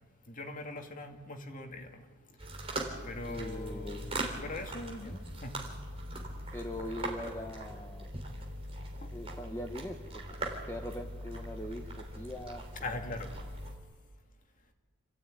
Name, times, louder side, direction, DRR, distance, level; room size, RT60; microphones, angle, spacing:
voice 1, 0.3-2.0 3.0-5.6 9.0-9.1 12.8-13.3, left 2 dB, 35° left, 3 dB, 2.2 m, -41 dB
sound 1, 2.4-13.8, right 1 dB, 25° right, 3.5 m, -41 dB
voice 2, 3.2-4.0 5.0-5.2 6.5-8.1 9.1-10.4 10.6-13.5, left 1 dB, 10° left, 2 dB, 1.3 m, -42 dB
27.5 x 15.0 x 9.3 m, 1.4 s
head